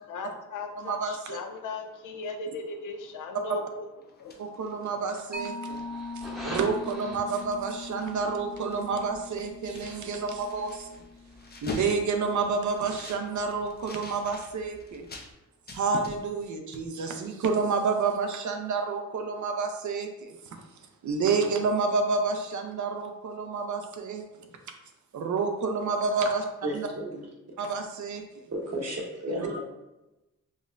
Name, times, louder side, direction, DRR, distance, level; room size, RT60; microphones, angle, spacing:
voice 1, 0.1-3.9 4.2-4.7, left 3 dB, 80° left, 4 dB, 0.5 m, -38 dB
voice 2, 0.8-1.4 4.4-5.8 6.4-11.0 11.6-15.0 15.7-20.3 21.0-24.2 25.1-26.4 26.7-26.9 27.6-28.2 29.3-29.4, right 4 dB, 70° right, 5 dB, 0.6 m, -29 dB
sound 1, 4.0-6.1 6.5-6.6 6.9-8.2 8.5-15.3 15.7-16.5 16.7-16.9, left 3 dB, 30° left, 0.5 m, -45 dB
Mallet percussion, 5.3-12.4, left 3 dB, 30° right, 0.8 m, -42 dB
sound 2, 5.7-15.3, equal, ahead, 0.8 m, -48 dB
voice 3, 26.6-27.2 28.5-29.6, right 1 dB, 55° right, -1 dB, 1.0 m, -33 dB
5.2 x 2.1 x 2.5 m, 0.98 s
cardioid pair, 75°, 31 cm